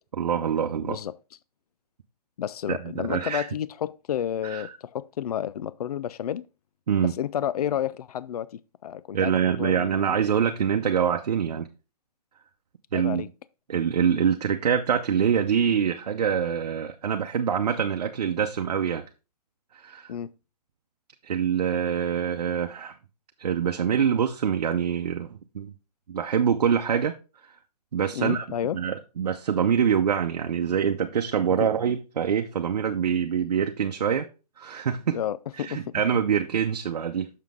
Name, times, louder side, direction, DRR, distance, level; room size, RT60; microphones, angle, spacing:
voice 1, 0.2-1.0 2.7-3.5 4.4-4.7 6.9-7.1 9.1-11.7 12.9-13.3 13.7-19.0 19.7-20.1 21.2-22.9 23.4-25.7 26.1-27.1 27.4-27.5 27.9-28.4 28.7-34.3 34.6-35.2 35.6-37.3, right 7 dB, 70° right, 0.8 m, -25 dB
voice 2, 0.8-1.1 2.4-6.5 7.0-10.2 12.9-13.3 20.1-20.3 28.1-28.8 31.6-31.7 35.1-36.2, left 10 dB, 70° left, 0.4 m, -31 dB
6.5 x 5.8 x 3.6 m
hypercardioid pair, 165°, 21 cm